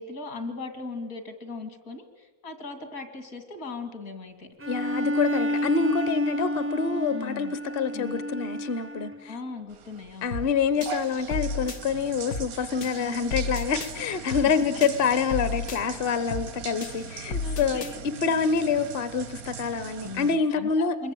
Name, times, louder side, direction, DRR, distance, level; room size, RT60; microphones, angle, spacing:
voice 1, 0.0-4.5 7.1-7.6 7.9-8.3 9.3-10.4 13.0-13.3 17.4-18.0 20.0-20.7 21.0-21.1, left 3 dB, 70° left, 6 dB, 3.1 m, -38 dB
Bowed string instrument, 4.6-9.3, left 1 dB, 15° right, 0.5 m, -30 dB
voice 2, 4.7-7.5 7.7-9.3 10.2-21.0, left 5 dB, 45° left, 12 dB, 1.0 m, -26 dB
sound 1, 9.7-20.4, right 8 dB, 75° right, 1.5 m, -40 dB
sound 2, 10.3-10.5 10.8-11.8 12.3-12.5 12.8-13.9 14.3-14.5 14.8-15.8 16.3-16.5 16.8-17.9, left 4 dB, 85° left, 1.8 m, -33 dB
26.5 x 21.5 x 9.1 m, 1.3 s
omnidirectional pair, 1.5 m